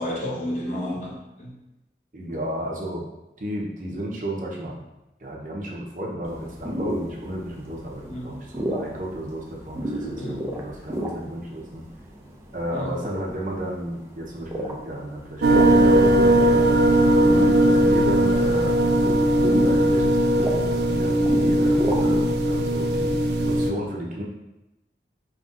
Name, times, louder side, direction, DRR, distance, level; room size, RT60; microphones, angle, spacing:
voice 1, 0.0-1.6 8.1-8.3 8.7-8.8 10.2-10.4 12.7-12.9, left 1 dB, 40° left, -5 dB, 0.9 m, -31 dB
voice 2, 2.1-3.1 3.4-4.7 5.2-11.8 12.5-16.9 17.2-18.8 19.6-24.2, equal, 45° right, -2 dB, 0.8 m, -32 dB
sound 1, 6.2-22.4, right 1 dB, 15° right, 0.5 m, -33 dB
sound 2, 15.4-23.7, right 1 dB, 70° right, 0.4 m, -19 dB
5.4 x 3.2 x 2.5 m, 0.97 s
head